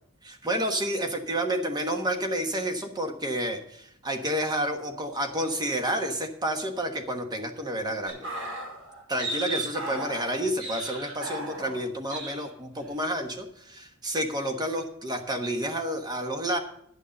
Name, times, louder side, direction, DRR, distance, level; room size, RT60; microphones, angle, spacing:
voice 1, 0.2-8.3 9.1-16.6, right 1 dB, 20° right, 5 dB, 1.2 m, -30 dB
sound 1, 8.1-11.8 12.1-12.4 12.8-13.0, right 1 dB, 80° right, 5.7 m, -35 dB
11.0 x 6.5 x 7.5 m, 0.70 s
head